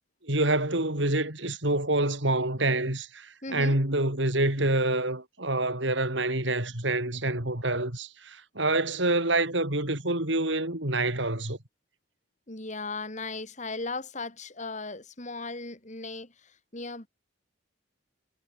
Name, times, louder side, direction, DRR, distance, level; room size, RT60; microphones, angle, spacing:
voice 1, 0.2-11.6, right 2 dB, 65° right, 4.9 m, -27 dB
voice 2, 3.4-3.8 12.5-17.1, left 3 dB, 35° left, 3.2 m, -37 dB
head